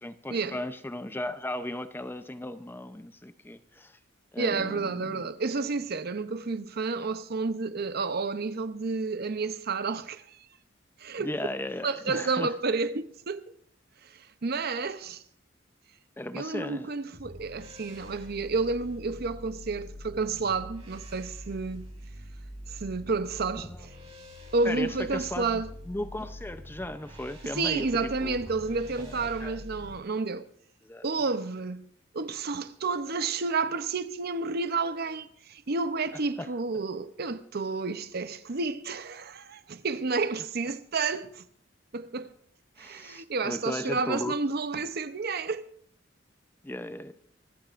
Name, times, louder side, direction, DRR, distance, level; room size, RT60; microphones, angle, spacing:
voice 1, 0.0-4.0 4.3-5.3 11.2-12.5 16.2-16.9 23.6-23.9 24.6-28.5 29.0-29.6 30.8-31.0 36.4-36.5 42.8-44.4 46.6-47.1, left 1 dB, 10° left, 0.6 m, -36 dB
voice 2, 4.4-10.4 11.0-11.3 11.8-13.4 14.4-15.2 16.3-21.9 22.7-23.9 24.5-25.7 27.6-30.4 31.0-31.9 32.1-41.4 41.9-42.3 42.8-45.6, right 4 dB, 55° right, 0.7 m, -30 dB
sound 1, 17.1-29.9, left 1 dB, 35° right, 4.1 m, -45 dB
25.0 x 14.5 x 2.5 m
head